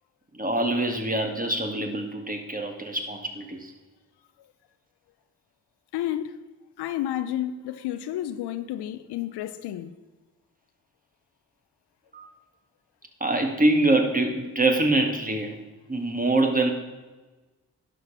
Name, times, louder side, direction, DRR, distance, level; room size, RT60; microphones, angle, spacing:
voice 1, 0.3-3.7 12.1-12.3 13.2-15.5 15.9-16.7, right 2 dB, 20° right, 2.0 m, -24 dB
voice 2, 5.9-6.4 6.8-9.9, left 12 dB, 70° left, 0.7 m, -31 dB
11.0 x 5.3 x 5.7 m
hypercardioid pair, 40°, 41 cm